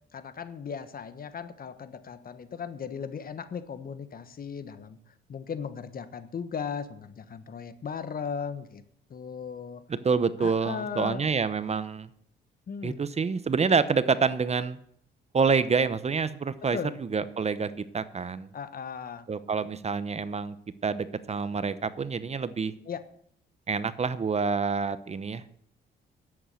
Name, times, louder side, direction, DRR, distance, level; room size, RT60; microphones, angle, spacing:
voice 1, 0.1-5.0 5.3-8.8 9.1-9.8 10.4-11.2 12.7-13.0 16.7-17.0 18.5-19.2 22.9-23.0, left 6 dB, 45° left, 12 dB, 1.3 m, -37 dB
voice 2, 9.9-12.1 12.8-14.8 15.3-18.5 19.3-20.5 20.8-22.7 23.7-25.4, right 5 dB, 35° right, 14 dB, 0.8 m, -27 dB
11.0 x 8.3 x 7.7 m, 0.67 s
cardioid pair, 90°, 20 cm